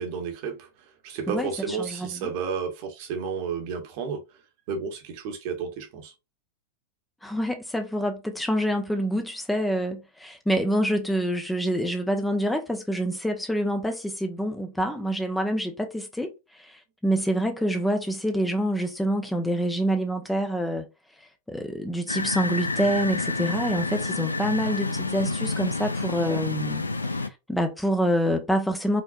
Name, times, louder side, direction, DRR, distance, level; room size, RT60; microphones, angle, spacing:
voice 1, 0.0-4.4 4.7-6.1, right 6 dB, 45° right, 1.2 m, -32 dB
voice 2, 1.3-2.3 7.2-20.9 21.5-26.8 27.1-29.0, equal, 5° left, 0.7 m, -27 dB
sound 1, 22.1-27.3, left 3 dB, 80° left, 0.4 m, -29 dB
5.0 x 2.8 x 2.4 m
figure-of-eight pair, 90°, 0 cm